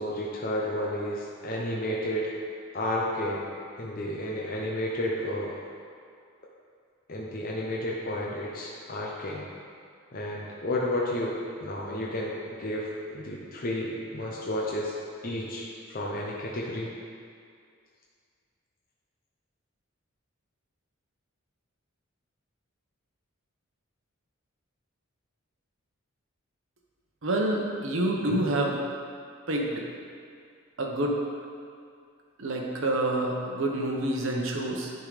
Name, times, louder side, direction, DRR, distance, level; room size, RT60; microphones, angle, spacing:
voice 1, 0.0-2.3 2.7-3.4 3.8-5.6 7.1-9.4 10.1-14.9 15.2-16.9 28.2-28.4, left 1 dB, 45° left, -3 dB, 0.7 m, -32 dB
voice 2, 27.2-28.8 29.5-29.8 30.8-31.2 32.4-34.9, right 1 dB, 65° right, 0 dB, 1.0 m, -27 dB
10.5 x 3.8 x 4.9 m, 2.3 s
head